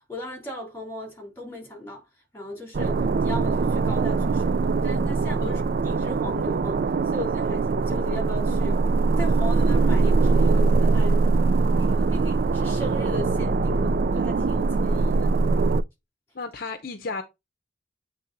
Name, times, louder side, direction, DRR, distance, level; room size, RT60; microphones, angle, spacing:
voice 1, 0.1-2.0 2.3-8.8 9.2-11.2 11.7-15.3, equal, 10° left, 3.2 m, -37 dB
sound 1, 2.7-15.8, right 3 dB, 45° right, 0.3 m, -22 dB
voice 2, 16.3-17.2, left 4 dB, 50° left, 0.7 m, -33 dB
8.2 x 3.4 x 3.9 m
head